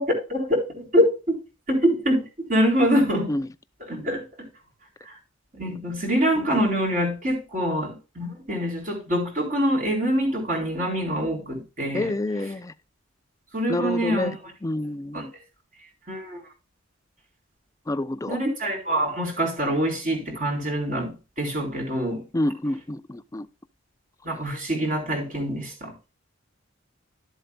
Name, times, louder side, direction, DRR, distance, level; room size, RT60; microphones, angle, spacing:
voice 1, 0.0-1.4 1.7-3.3 3.8-4.5 5.1-5.2 5.6-12.1 13.5-14.3 15.1-15.2 16.1-16.4 18.3-22.3 24.2-25.9, equal, 40° right, 3.9 m, -25 dB
voice 2, 11.9-12.7 13.7-14.3 14.6-15.3 17.9-18.4 22.3-23.5, left 1 dB, 15° left, 0.4 m, -28 dB
12.5 x 7.7 x 2.3 m
head